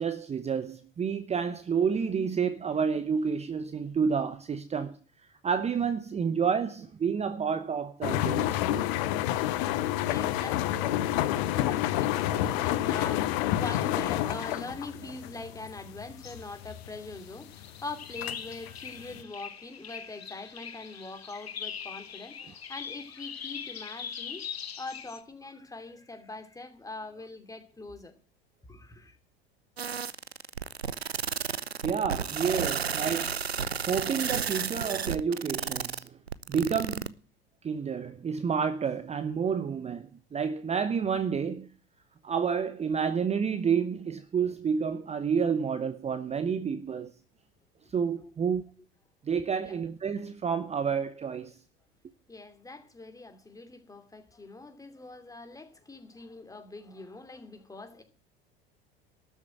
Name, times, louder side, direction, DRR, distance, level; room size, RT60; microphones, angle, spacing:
voice 1, 0.0-5.0 5.4-9.1 31.8-33.4 33.9-36.2 36.5-37.1 37.6-41.7 42.2-47.1 47.9-48.6 49.2-51.6, right 6 dB, 20° right, 0.9 m, -29 dB
sound 1, 8.0-19.2, left 13 dB, 55° left, 1.1 m, -29 dB
voice 2, 10.0-24.5 24.8-28.1 28.7-29.2 48.2-48.3 49.6-49.8 52.3-58.0, left 3 dB, 10° left, 2.8 m, -43 dB
sound 2, 16.2-25.2, left 8 dB, 80° left, 1.2 m, -42 dB
sound 3, 29.8-37.1, right 7 dB, 90° right, 0.6 m, -32 dB
13.0 x 7.4 x 8.8 m
figure-of-eight pair, 75°, 31 cm